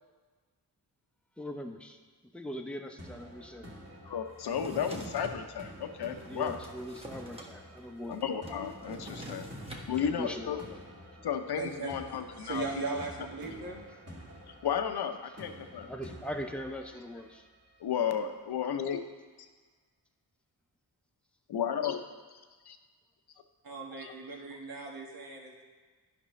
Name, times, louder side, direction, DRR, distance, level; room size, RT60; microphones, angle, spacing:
voice 1, 1.4-2.0 2.3-3.7 6.2-8.2 9.9-10.8 11.2-11.3 15.8-17.5, equal, 5° left, 3 dB, 0.8 m, -41 dB
sound 1, 3.0-17.9, equal, 35° right, 2.1 m, -50 dB
voice 2, 4.0-6.6 8.1-10.6 11.2-12.7 14.6-15.9 17.8-19.0 21.5-22.0 22.3-22.8 24.0-24.1, left 8 dB, 65° left, 7 dB, 0.8 m, -33 dB
Drawer open or close, 4.4-5.4 6.0-7.5 7.8-7.9 8.1-9.9, right 1 dB, 15° right, 1.3 m, -45 dB
voice 3, 11.6-11.9 12.4-13.8 23.6-25.6, right 4 dB, 55° right, -1 dB, 1.5 m, -38 dB
11.0 x 5.3 x 3.2 m, 1.4 s
cardioid pair, 50°, 42 cm